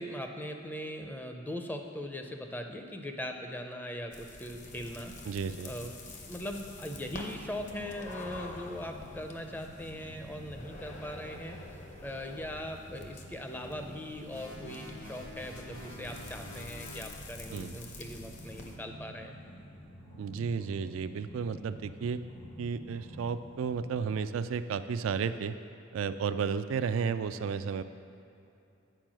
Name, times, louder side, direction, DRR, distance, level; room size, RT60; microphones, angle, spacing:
voice 1, 0.0-5.2 5.6-5.9 6.2-11.6 12.0-19.4, left 1 dB, 10° left, 4 dB, 0.5 m, -40 dB
sound 1, 4.1-18.8, left 2 dB, 40° left, 0.8 m, -48 dB
sound 2, 4.5-24.1, equal, 60° left, 1.2 m, -50 dB
voice 2, 5.2-5.7 17.5-17.8 20.2-22.2 22.6-25.6 25.9-27.8, right 6 dB, 85° right, 11 dB, 0.3 m, -33 dB
sound 3, 14.3-17.1, left 1 dB, 85° left, 1.7 m, -48 dB
9.0 x 4.6 x 6.1 m, 2.7 s
head